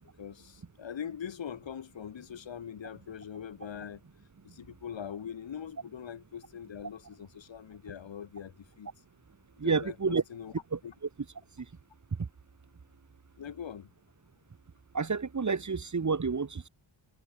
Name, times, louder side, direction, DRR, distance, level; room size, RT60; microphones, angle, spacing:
voice 1, 0.2-4.0 4.4-8.9 9.6-10.5 10.8-10.9 13.4-13.9, left 8 dB, 75° left, 1.7 m, -42 dB
voice 2, 9.6-10.2 10.7-10.8 14.9-16.7, right 5 dB, 40° right, 1.7 m, -29 dB
wide cardioid pair, 95°, 45 cm